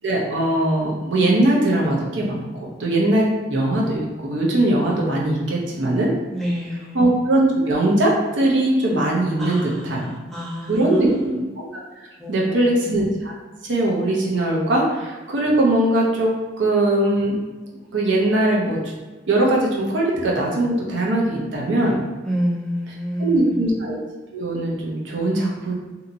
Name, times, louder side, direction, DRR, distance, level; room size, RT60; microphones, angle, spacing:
voice 1, 0.0-6.1 6.9-10.1 10.7-11.7 12.3-13.3 13.6-17.4 17.9-18.8 19.3-22.0 23.2-24.0 24.3-25.7, right 1 dB, 85° right, -3 dB, 0.7 m, -20 dB
voice 2, 6.3-7.1 9.4-11.4 12.2-12.9 22.2-23.7, equal, ahead, -6 dB, 0.5 m, -28 dB
2.8 x 2.8 x 2.6 m, 1.3 s
head